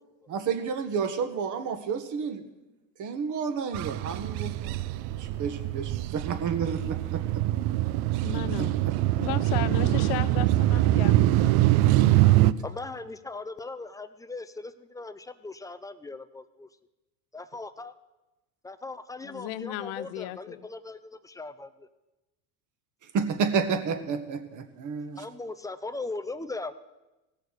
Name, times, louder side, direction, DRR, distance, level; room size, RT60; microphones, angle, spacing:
voice 1, 0.3-2.4 3.0-4.8 5.1-7.2 8.6-8.7 23.1-25.2, right 6 dB, 45° right, 8 dB, 1.6 m, -30 dB
sound 1, 3.7-12.5, right 15 dB, 60° right, 0.6 m, -24 dB
voice 2, 8.2-8.8 9.2-11.8 19.2-20.6, left 14 dB, 60° left, 15 dB, 0.8 m, -35 dB
voice 3, 12.6-16.7 17.3-17.9 18.6-21.9 25.2-26.7, left 3 dB, 10° left, 12 dB, 0.4 m, -39 dB
16.5 x 6.7 x 6.5 m, 1.0 s
supercardioid pair, 105°, 44 cm